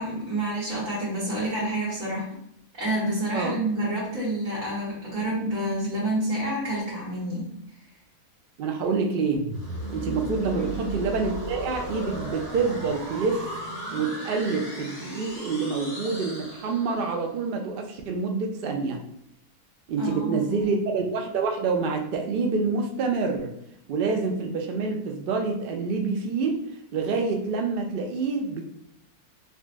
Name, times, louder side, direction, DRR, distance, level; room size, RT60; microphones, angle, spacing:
voice 1, 0.0-2.3 2.8-7.5 10.6-10.9 20.0-20.8, right 1 dB, 65° right, -8 dB, 1.5 m, -28 dB
voice 2, 8.6-9.4 9.9-13.4 13.9-19.0 19.9-23.5 23.9-26.6 26.9-28.6, right 4 dB, 80° right, 3 dB, 0.5 m, -27 dB
sound 1, 9.3-17.2, right 1 dB, 70° left, 1.9 m, -36 dB
4.0 x 2.3 x 2.4 m, 0.76 s
omnidirectional pair, 1.6 m